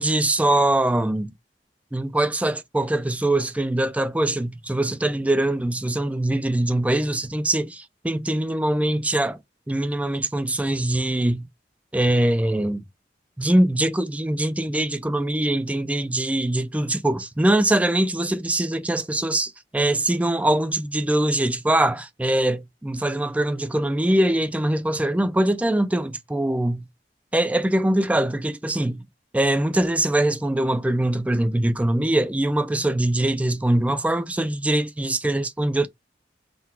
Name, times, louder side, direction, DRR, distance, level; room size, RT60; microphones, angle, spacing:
voice 1, 0.0-1.3 1.9-9.4 9.7-11.4 11.9-12.8 13.4-26.8 27.3-29.1 29.3-35.9, right 1 dB, 10° right, 0.3 m, -22 dB
3.8 x 2.2 x 4.2 m
head